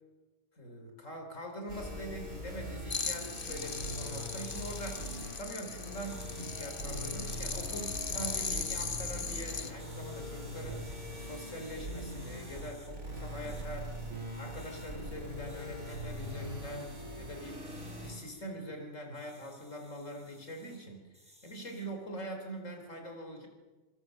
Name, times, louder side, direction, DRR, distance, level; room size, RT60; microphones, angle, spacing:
voice 1, 0.6-13.9 14.4-23.5, equal, 65° left, 3 dB, 4.5 m, -43 dB
sound 1, 1.7-18.1, equal, 60° right, 6.5 m, -42 dB
sound 2, 2.9-9.7, left 5 dB, 40° left, 1.3 m, -38 dB
sound 3, 3.5-5.3 6.0-6.5 7.2-7.7 8.1-8.9 9.8-12.9 13.4-13.6 14.5-14.9 15.5-16.3 16.6-17.0 17.6-18.4 19.1-20.8 21.1-21.9, equal, 5° right, 5.7 m, -57 dB
26.5 x 21.5 x 6.6 m, 1.2 s
omnidirectional pair, 1.4 m